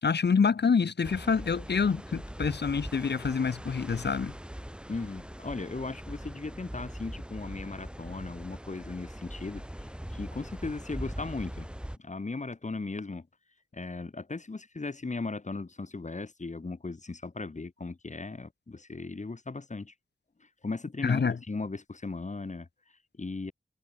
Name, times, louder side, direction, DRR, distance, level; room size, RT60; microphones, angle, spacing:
voice 1, 0.0-4.3 21.0-21.3, left 5 dB, 70° left, 4.2 m, -26 dB
sound 1, 1.0-12.0, equal, 5° right, 7.8 m, -41 dB
voice 2, 4.9-11.7 12.0-13.3 13.7-19.9 20.4-23.5, left 3 dB, 40° left, 7.2 m, -37 dB
cardioid pair, 65°, 18 cm